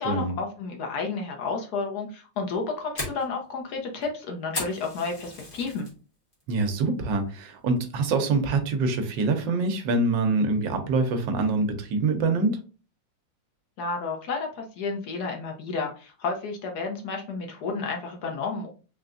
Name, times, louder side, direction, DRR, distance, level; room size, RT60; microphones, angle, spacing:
voice 1, 0.0-5.9 13.8-18.7, left 4 dB, 65° left, 2 dB, 1.1 m, -31 dB
Fire, 2.4-5.9 6.3-6.7 7.1-7.2 7.8-8.1, left 1 dB, 30° left, 1.5 m, -36 dB
voice 2, 6.5-12.6, right 3 dB, 80° right, 6 dB, 1.4 m, -25 dB
3.8 x 3.3 x 2.5 m, 0.36 s
omnidirectional pair, 2.0 m